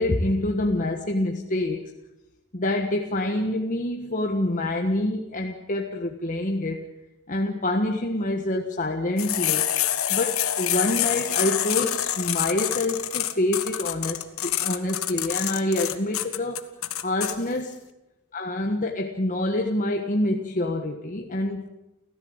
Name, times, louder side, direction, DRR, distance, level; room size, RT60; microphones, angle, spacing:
voice 1, 0.0-1.8 2.5-6.8 7.3-9.6 10.1-16.6 17.0-17.8 18.3-21.7, left 1 dB, 40° left, 2 dB, 1.5 m, -26 dB
sound 1, 9.2-17.3, left 11 dB, 80° left, 1.5 m, -26 dB
29.5 x 15.0 x 8.0 m, 0.99 s
head